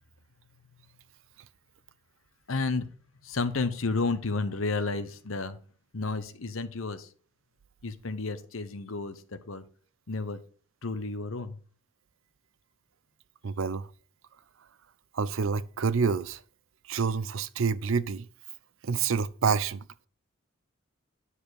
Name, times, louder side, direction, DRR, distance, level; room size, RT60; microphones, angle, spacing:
voice 1, 2.5-2.9 3.2-5.6 5.9-7.1 7.8-9.6 10.1-10.4 10.8-11.6, left 3 dB, 75° left, 1.0 m, -31 dB
voice 2, 13.4-13.9 15.1-16.4 16.9-18.2 18.8-19.8, right 5 dB, 70° right, 0.5 m, -27 dB
9.9 x 5.1 x 6.5 m
head